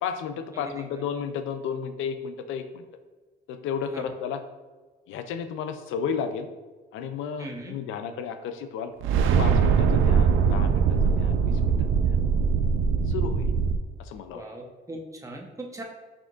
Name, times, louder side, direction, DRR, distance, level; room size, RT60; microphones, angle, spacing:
voice 1, 0.0-2.9 3.5-4.4 5.1-6.5 6.9-8.9 9.2-12.2 13.1-13.5 14.0-14.4, left 7 dB, 90° left, 9 dB, 0.4 m, -33 dB
voice 2, 7.4-7.8 14.3-15.8, right 1 dB, 15° right, 0 dB, 0.9 m, -39 dB
sound 1, 9.0-13.8, right 6 dB, 85° right, 0.4 m, -22 dB
6.1 x 3.6 x 2.4 m, 1.3 s
cardioid pair, 90°, 20 cm